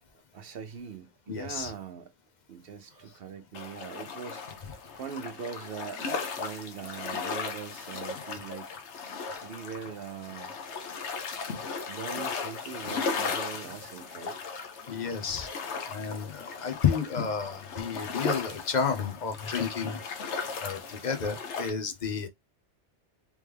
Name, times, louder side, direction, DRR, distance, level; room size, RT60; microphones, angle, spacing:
voice 1, 0.1-2.1 2.5-8.7 9.4-10.5 11.9-14.4, right 6 dB, 60° right, 0.8 m, -41 dB
voice 2, 1.3-1.7 14.9-15.5 15.9-20.0 20.6-22.3, left 6 dB, 45° left, 0.8 m, -31 dB
sound 1, 3.5-21.7, left 5 dB, 90° left, 1.1 m, -36 dB
3.5 x 3.3 x 3.3 m
omnidirectional pair, 1.1 m